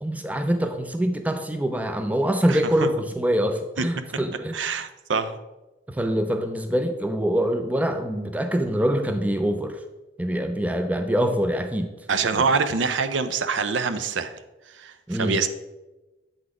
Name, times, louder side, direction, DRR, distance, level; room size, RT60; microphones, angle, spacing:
voice 1, 0.0-4.6 5.9-9.8 10.2-11.9 12.3-12.4 15.1-15.4, equal, 10° right, 7 dB, 0.4 m, -24 dB
voice 2, 4.5-5.4 12.1-14.3 14.7-15.5, right 5 dB, 90° right, 10 dB, 0.5 m, -25 dB
7.8 x 4.1 x 4.8 m, 1.1 s
head